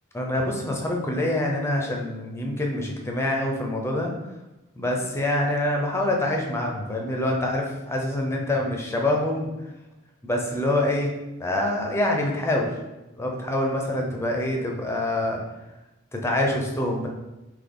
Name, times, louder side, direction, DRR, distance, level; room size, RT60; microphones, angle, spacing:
voice 1, 0.1-4.1 4.8-9.5 10.2-12.7 13.2-15.4 16.1-17.1, left 1 dB, 15° left, 0 dB, 0.6 m, -25 dB
3.9 x 3.2 x 3.6 m, 1.0 s
head